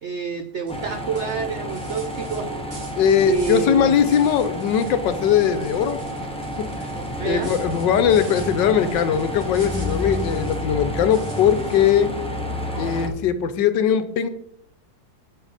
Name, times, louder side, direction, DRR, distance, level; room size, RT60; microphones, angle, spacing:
voice 1, 0.0-2.6 3.2-4.0 7.2-7.5, right 5 dB, 75° right, 8 dB, 0.6 m, -28 dB
sound 1, 0.7-13.1, equal, 5° left, 0.8 m, -30 dB
sound 2, 0.7-0.8 1.1-3.8 4.0-5.0 5.3-10.7 11.1-12.0, right 2 dB, 35° right, 1.8 m, -45 dB
voice 2, 3.0-6.0 7.2-12.1 12.8-14.3, left 8 dB, 80° left, 11 dB, 1.4 m, -20 dB
9.3 x 6.6 x 4.1 m, 0.75 s
omnidirectional pair, 2.0 m